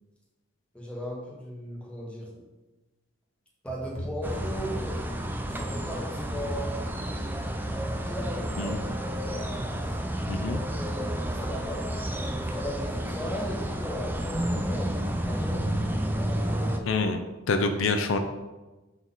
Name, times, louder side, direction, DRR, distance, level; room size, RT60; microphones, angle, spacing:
voice 1, 0.7-2.3 3.6-5.0 5.4-6.8 7.7-10.0 10.3-15.7 16.1-17.1, equal, 5° left, -3 dB, 1.3 m, -38 dB
sound 1, 3.7-5.9, equal, 35° left, 1.5 m, -39 dB
sound 2, 4.2-16.8, right 1 dB, 10° right, 0.4 m, -31 dB
voice 2, 10.3-10.6 16.9-17.2 17.5-18.2, left 3 dB, 80° left, 7 dB, 0.5 m, -26 dB
6.9 x 4.0 x 3.9 m, 1.1 s
head